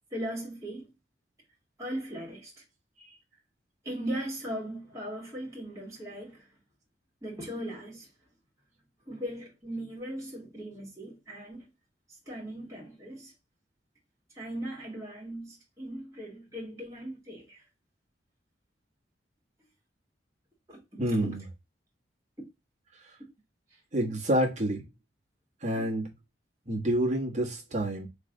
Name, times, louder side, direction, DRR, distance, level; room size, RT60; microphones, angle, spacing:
voice 1, 0.1-0.9 1.8-2.6 3.8-6.5 7.2-8.1 9.1-11.7 12.1-13.3 14.3-17.6 20.7-21.4 23.7-24.1, right 1 dB, 15° right, 2.0 m, -39 dB
voice 2, 21.0-21.4 23.9-24.8 25.6-26.1 26.7-28.1, right 1 dB, 40° right, 1.3 m, -28 dB
3.3 x 3.2 x 4.8 m
head